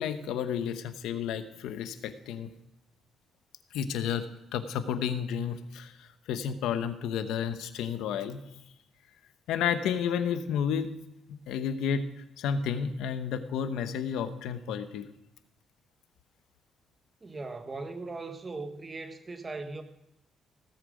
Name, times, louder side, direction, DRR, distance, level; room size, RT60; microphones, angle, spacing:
voice 1, 0.0-2.5 3.7-4.3 4.5-8.4 9.5-10.9 11.3-15.1, left 7 dB, 90° left, 0.9 m, -31 dB
voice 2, 17.2-19.8, right 3 dB, 30° right, 1.4 m, -39 dB
16.5 x 7.5 x 5.2 m
cardioid pair, 90°, 0 cm